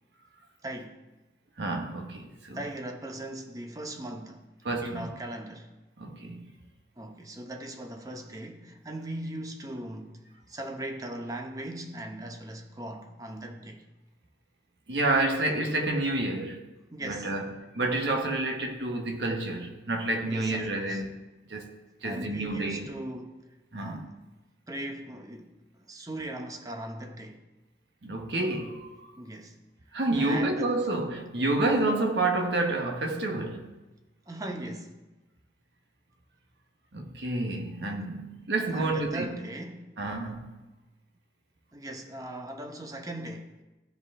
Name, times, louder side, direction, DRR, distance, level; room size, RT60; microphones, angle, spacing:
voice 1, 0.6-1.0 2.5-4.4 4.8-5.7 7.0-13.9 16.9-17.4 20.3-21.0 22.0-24.2 24.7-27.4 29.2-29.6 30.2-30.8 34.3-35.0 38.7-39.9 41.7-43.6, right 1 dB, 20° right, 0.8 m, -39 dB
voice 2, 1.6-2.6 4.6-5.1 6.0-6.5 14.9-16.7 17.0-21.1 21.5-21.7 22.0-23.0 23.7-24.1 28.0-29.1 29.9-33.7 36.9-39.3 40.0-40.6, right 2 dB, 80° right, 1.2 m, -29 dB
14.5 x 4.9 x 3.7 m
head